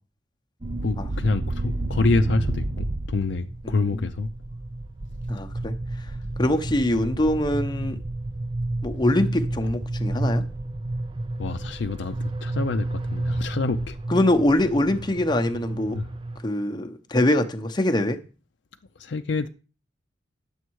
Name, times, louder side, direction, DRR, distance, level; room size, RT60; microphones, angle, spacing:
sound 1, 0.6-16.4, right 2 dB, 25° right, 0.5 m, -31 dB
voice 1, 0.8-4.3 7.8-7.9 11.4-14.0 15.9-16.1 19.0-19.5, left 3 dB, 65° left, 0.5 m, -26 dB
voice 2, 5.3-5.7 6.4-8.0 8.8-10.4 14.1-16.0 16.4-18.2, left 1 dB, 25° left, 0.8 m, -23 dB
9.7 x 7.2 x 4.6 m
head